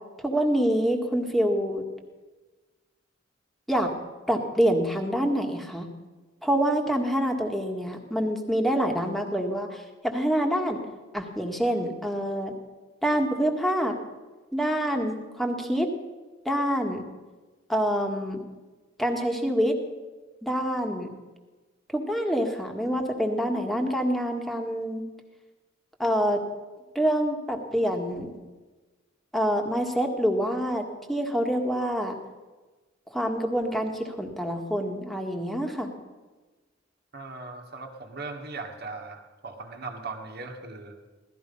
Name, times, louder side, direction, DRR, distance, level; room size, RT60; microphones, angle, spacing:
voice 1, 0.2-1.8 3.7-3.9 4.3-5.9 6.4-10.8 11.1-12.5 13.0-13.9 14.5-15.9 16.4-17.0 17.7-18.4 19.0-19.7 20.4-21.1 21.9-25.0 26.0-26.4 26.9-28.3 29.3-32.1 33.1-35.9, equal, ahead, 3 dB, 1.7 m, -26 dB
voice 2, 37.1-41.0, right 3 dB, 55° right, 3 dB, 1.8 m, -39 dB
17.0 x 13.5 x 5.5 m, 1.3 s
head